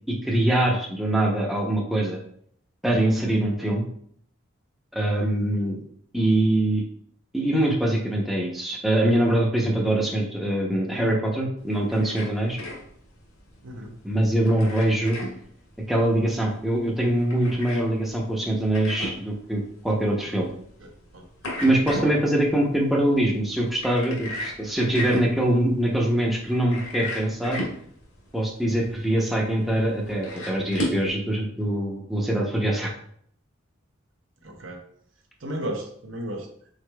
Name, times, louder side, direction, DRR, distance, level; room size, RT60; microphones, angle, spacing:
voice 1, 0.1-2.2 2.8-3.8 4.9-5.8 6.1-6.8 7.3-12.6 14.0-15.2 15.9-20.5 21.6-27.6 28.3-32.9, right 1 dB, ahead, -2 dB, 0.6 m, -23 dB
sound 1, 11.6-31.1, left 1 dB, 85° left, 1.6 m, -37 dB
voice 2, 13.6-14.0 20.8-21.3 21.9-22.2 34.4-34.9 35.4-36.5, right 1 dB, 65° right, 2 dB, 0.8 m, -34 dB
4.9 x 4.3 x 2.2 m, 0.63 s
head